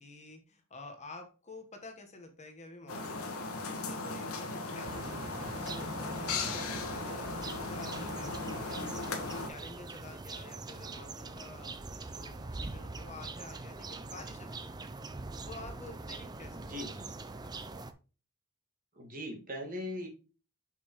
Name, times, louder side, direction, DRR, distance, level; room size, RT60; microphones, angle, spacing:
voice 1, 0.0-15.1 15.4-17.0 17.4-17.8, left 2 dB, 30° left, 5 dB, 1.1 m, -50 dB
sound 1, 2.9-9.5, left 3 dB, 85° left, 1.2 m, -37 dB
sound 2, 4.8-17.9, right 3 dB, 20° right, 0.4 m, -43 dB
voice 2, 16.5-17.1 19.0-20.1, left 1 dB, 40° right, 1 dB, 1.9 m, -40 dB
6.5 x 5.5 x 3.0 m, 0.34 s
head